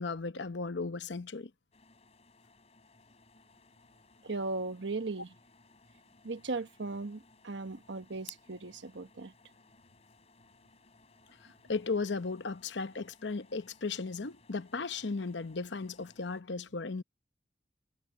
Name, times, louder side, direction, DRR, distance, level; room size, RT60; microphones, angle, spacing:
voice 1, 0.0-1.5 11.7-17.0, left 4 dB, 70° left, 0.8 m, -36 dB
sound 1, 1.7-16.4, left 5 dB, 35° left, 3.8 m, -61 dB
voice 2, 4.2-5.3 6.2-9.3, right 3 dB, 75° right, 1.2 m, -37 dB
head